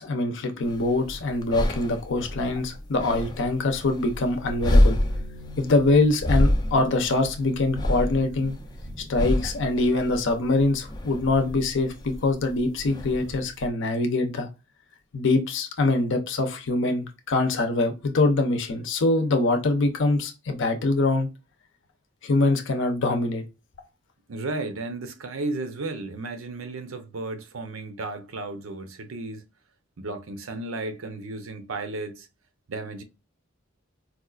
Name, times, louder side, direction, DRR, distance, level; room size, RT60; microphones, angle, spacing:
voice 1, 0.0-5.0 5.6-8.5 9.1-14.5 15.1-21.3 22.2-23.4, left 2 dB, 65° left, 0.6 m, -24 dB
sound 1, 0.6-13.7, left 1 dB, 20° left, 0.4 m, -27 dB
sound 2, 4.7-11.3, right 1 dB, 35° right, 0.6 m, -46 dB
voice 2, 24.3-29.5 30.0-32.3 32.7-33.0, right 2 dB, 80° right, 0.7 m, -34 dB
4.2 x 2.4 x 2.3 m
head